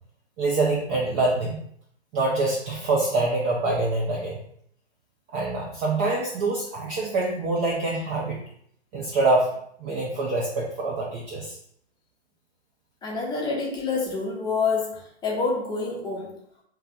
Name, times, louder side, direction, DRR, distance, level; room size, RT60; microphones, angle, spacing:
voice 1, 0.4-1.6 2.1-4.4 5.3-8.4 8.9-9.5 9.8-11.6, right 2 dB, 20° right, -3 dB, 0.4 m, -25 dB
voice 2, 13.0-16.3, left 4 dB, 15° left, -2 dB, 0.9 m, -27 dB
3.4 x 2.9 x 3.5 m, 0.67 s
figure-of-eight pair, 110°, 34 cm